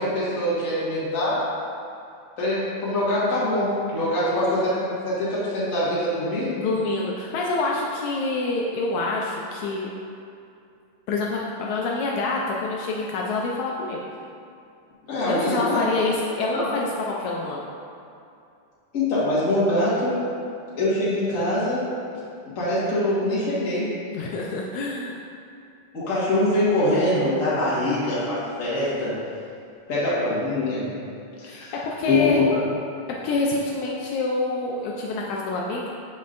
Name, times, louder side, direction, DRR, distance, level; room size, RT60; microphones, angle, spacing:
voice 1, 0.0-1.4 2.4-6.5 15.1-15.8 16.5-16.7 18.9-20.2 20.8-21.8 22.5-23.9 25.9-29.1 29.9-30.9 31.4-31.7 32.1-32.4, left 1 dB, 35° left, -10 dB, 1.5 m, -23 dB
voice 2, 4.2-4.6 6.6-9.9 11.1-14.1 15.3-17.7 24.1-25.2 31.4-32.4 33.2-35.9, left 3 dB, 80° left, -2 dB, 1.8 m, -27 dB
7.4 x 5.1 x 2.5 m, 2.5 s
omnidirectional pair, 3.4 m